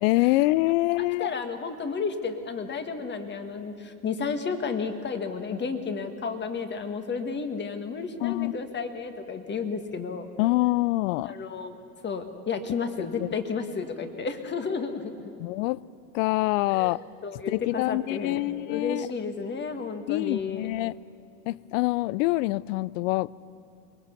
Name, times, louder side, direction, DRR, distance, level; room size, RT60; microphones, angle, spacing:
voice 1, 0.0-1.3 8.2-8.5 10.4-11.3 13.0-13.3 15.4-15.8 16.1-17.0 17.5-19.1 20.1-20.9 21.5-23.5, left 20 dB, 55° left, 23 dB, 0.5 m, -25 dB
voice 2, 1.2-10.3 11.2-15.3 16.7-16.9 17.2-20.7, left 5 dB, 25° left, 7 dB, 1.7 m, -32 dB
23.5 x 20.0 x 7.1 m, 2.5 s
hypercardioid pair, 115°, 47 cm